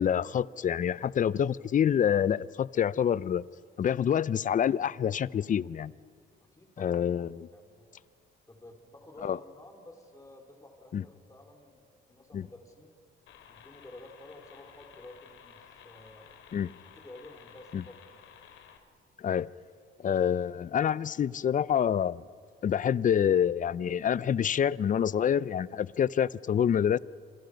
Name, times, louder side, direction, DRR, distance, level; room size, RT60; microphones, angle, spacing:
voice 1, 0.0-3.4 3.8-5.9 6.8-7.5 9.2-9.4 10.9-11.0 12.3-12.5 16.5-16.7 17.7-17.8 19.2-19.5 20.0-22.2 22.6-27.0, left 8 dB, 40° left, 0.5 m, -27 dB
voice 2, 6.3-8.1 8.5-11.8 12.1-12.9 13.5-16.3 17.0-18.3 20.0-21.4, left 1 dB, 15° left, 4.5 m, -52 dB
sound 1, 13.3-18.8, left 8 dB, 85° left, 2.7 m, -54 dB
28.0 x 26.5 x 5.3 m
cardioid pair, 90°, 20 cm